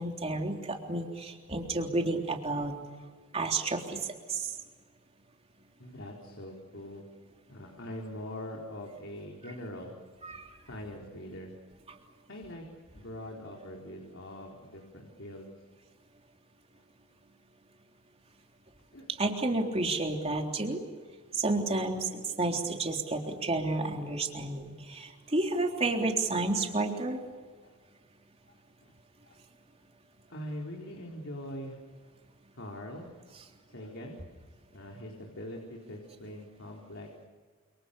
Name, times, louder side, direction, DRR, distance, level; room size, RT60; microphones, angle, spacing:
voice 1, 0.0-2.7 3.3-4.6 10.2-10.5 19.2-20.8 21.3-27.2, right 2 dB, 30° right, 2 dB, 3.6 m, -31 dB
voice 2, 5.8-7.0 7.5-9.9 10.7-11.6 12.3-12.6 12.9-15.5 18.9-19.1 27.6-27.8 28.5-28.6 29.2-29.4 30.3-31.8 32.5-33.1 33.7-34.2 34.7-37.3, left 1 dB, 60° left, 0 dB, 4.4 m, -43 dB
30.0 x 28.0 x 6.9 m, 1.5 s
head